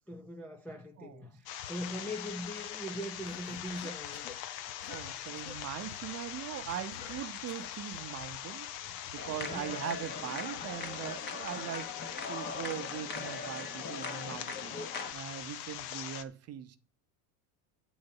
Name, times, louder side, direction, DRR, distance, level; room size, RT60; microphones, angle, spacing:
voice 1, 0.1-4.4 5.3-5.4 5.8-5.9 8.8-9.0 9.3-9.7 15.8-15.9, equal, 5° left, 0.3 m, -41 dB
voice 2, 1.0-1.3 4.9-8.7 9.1-16.8, right 11 dB, 30° right, 0.7 m, -41 dB
sound 1, 1.5-16.2, left 11 dB, 75° left, 0.9 m, -42 dB
Cough, 3.3-4.4 4.8-5.1 5.4-5.6 6.9-7.8, left 7 dB, 50° left, 1.5 m, -49 dB
sound 2, 9.2-15.1, left 4 dB, 20° left, 0.9 m, -40 dB
8.5 x 4.0 x 7.1 m
supercardioid pair, 125°, 48 cm